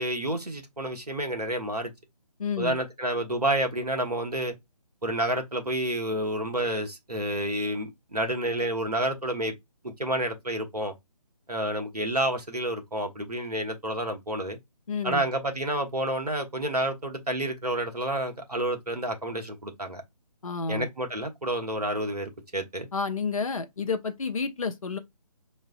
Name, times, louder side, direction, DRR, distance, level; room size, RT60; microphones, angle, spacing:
voice 1, 0.0-1.9 2.6-4.5 5.0-9.5 9.8-10.9 11.5-14.6 15.0-20.0 20.7-22.9, right 1 dB, 75° right, 1.0 m, -29 dB
voice 2, 2.4-2.8 14.9-15.2 20.4-20.9 22.9-25.0, left 4 dB, 55° left, 0.6 m, -30 dB
4.6 x 3.1 x 2.3 m
figure-of-eight pair, 150°, 20 cm